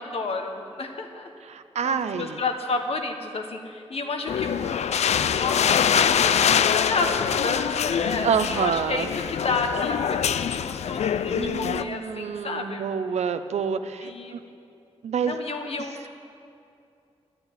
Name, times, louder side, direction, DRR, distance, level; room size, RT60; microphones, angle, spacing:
voice 1, 0.0-1.3 1.8-12.9 14.0-14.4 15.2-16.1, left 3 dB, 65° left, 4 dB, 1.4 m, -31 dB
voice 2, 1.5-2.4 8.2-9.1 11.4-14.4 15.0-15.4, right 6 dB, 90° right, 10 dB, 0.6 m, -27 dB
sound 1, 4.3-11.8, left 8 dB, 85° left, 0.4 m, -24 dB
10.5 x 9.0 x 10.0 m, 2.5 s
wide cardioid pair, 85°, 11 cm